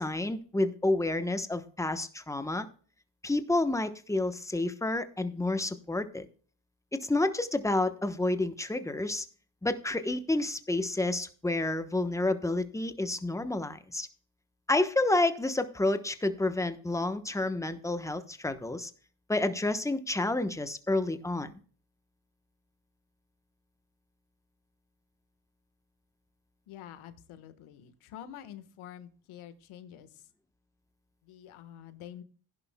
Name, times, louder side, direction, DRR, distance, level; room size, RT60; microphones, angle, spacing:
voice 1, 0.0-2.7 3.2-6.3 6.9-9.3 9.6-14.1 14.7-18.9 19.3-21.5, left 2 dB, 5° left, 10 dB, 1.0 m, -29 dB
voice 2, 26.7-30.2 31.2-32.2, left 10 dB, 80° left, 11 dB, 1.5 m, -47 dB
15.5 x 11.0 x 2.2 m, 0.42 s
cardioid pair, 95°, 49 cm